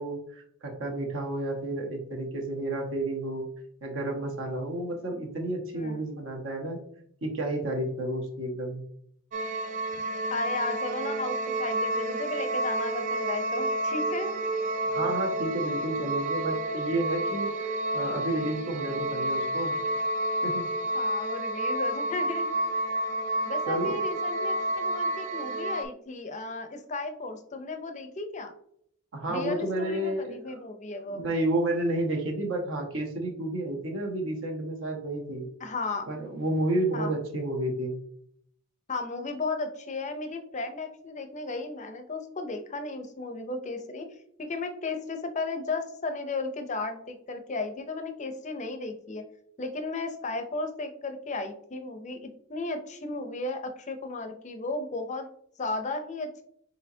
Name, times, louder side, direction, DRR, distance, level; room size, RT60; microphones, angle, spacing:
voice 1, 0.0-3.5 3.8-6.8 7.2-8.8 14.8-17.5 17.9-19.7 20.4-20.7 23.7-24.1 29.1-30.4 31.0-35.5 36.1-38.0, right 1 dB, 60° right, 1 dB, 1.0 m, -31 dB
sound 1, 9.3-25.8, right 1 dB, 35° right, 0.3 m, -30 dB
voice 2, 10.3-14.3 20.9-22.5 23.5-28.5 29.3-31.2 35.6-36.1 36.9-37.1 38.9-44.1 44.4-49.2 49.6-55.3 55.6-56.3, left 3 dB, 35° left, 6 dB, 0.5 m, -34 dB
4.3 x 4.0 x 2.7 m, 0.68 s
head